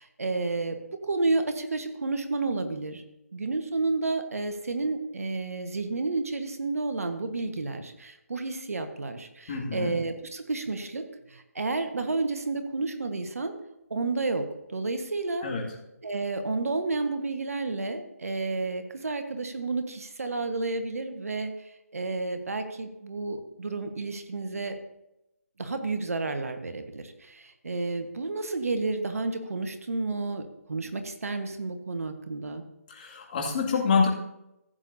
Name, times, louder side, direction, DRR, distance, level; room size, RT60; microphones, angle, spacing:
voice 1, 0.0-3.0 3.3-13.6 13.9-15.5 16.0-24.8 25.6-32.6, right 3 dB, 70° right, 7 dB, 1.3 m, -31 dB
voice 2, 9.5-9.9 15.4-15.7 32.9-34.1, left 5 dB, 35° left, -2 dB, 2.2 m, -26 dB
15.0 x 8.5 x 2.7 m, 0.89 s
figure-of-eight pair, 155°, 8 cm